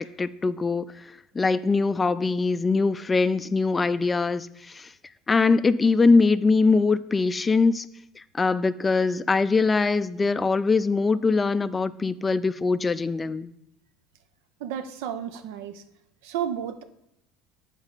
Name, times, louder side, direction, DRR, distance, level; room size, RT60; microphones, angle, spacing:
voice 1, 0.2-0.9 1.3-4.9 5.3-7.9 8.3-13.5, left 4 dB, 20° left, 15 dB, 0.3 m, -22 dB
voice 2, 14.6-15.8 16.2-16.8, right 9 dB, 80° right, 10 dB, 0.5 m, -32 dB
8.0 x 4.5 x 3.9 m, 0.82 s
supercardioid pair, 90°, 0 cm